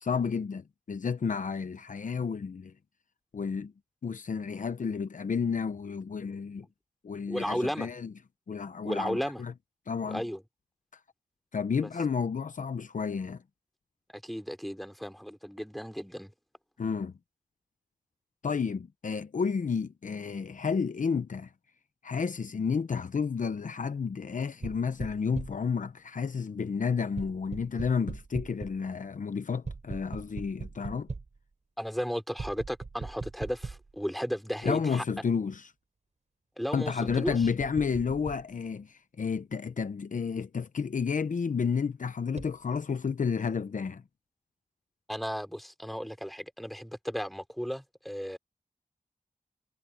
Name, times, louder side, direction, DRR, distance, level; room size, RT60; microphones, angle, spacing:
voice 1, 0.0-2.7 3.3-3.7 4.0-6.7 7.0-8.1 8.5-9.5 9.9-10.2 11.5-13.4 16.8-17.1 18.4-21.5 22.0-31.1 34.6-35.7 36.7-44.0, left 6 dB, 65° left, 0.8 m, -31 dB
voice 2, 7.3-7.9 8.8-9.4 10.0-10.4 11.8-11.9 14.1-16.3 31.8-35.0 36.6-37.4 45.1-48.4, equal, ahead, 3.9 m, -34 dB
sound 1, 24.6-25.7 27.2-28.9 29.7-31.4 32.4-34.0 34.6-34.7 37.1-38.4 42.4-42.6, right 3 dB, 50° right, 6.7 m, -40 dB
wide cardioid pair, 100°, 14 cm